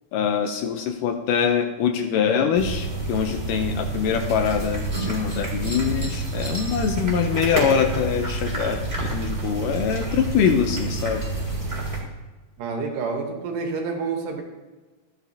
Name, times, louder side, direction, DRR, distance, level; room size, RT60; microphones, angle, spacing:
voice 1, 0.1-8.8 9.1-11.2, left 7 dB, 80° left, 5 dB, 2.0 m, -24 dB
sound 1, 2.5-12.0, right 2 dB, 25° right, 1.0 m, -28 dB
voice 2, 12.6-14.4, right 4 dB, 70° right, 3 dB, 2.5 m, -28 dB
13.5 x 9.0 x 2.7 m, 1.2 s
omnidirectional pair, 4.2 m